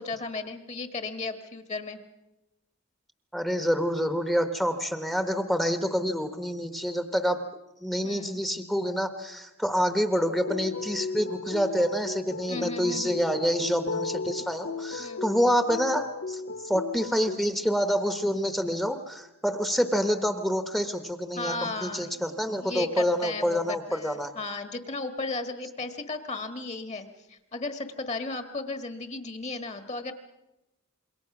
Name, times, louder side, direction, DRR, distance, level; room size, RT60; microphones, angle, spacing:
voice 1, 0.0-2.0 8.0-8.4 12.5-13.2 15.0-15.2 21.3-22.2 22.5-30.1, left 3 dB, 30° left, 9 dB, 1.5 m, -35 dB
voice 2, 3.3-7.4 7.8-24.3, equal, ahead, 9 dB, 1.1 m, -27 dB
sound 1, 10.4-17.4, left 4 dB, 60° left, 0.8 m, -35 dB
27.0 x 22.5 x 6.0 m, 0.97 s
head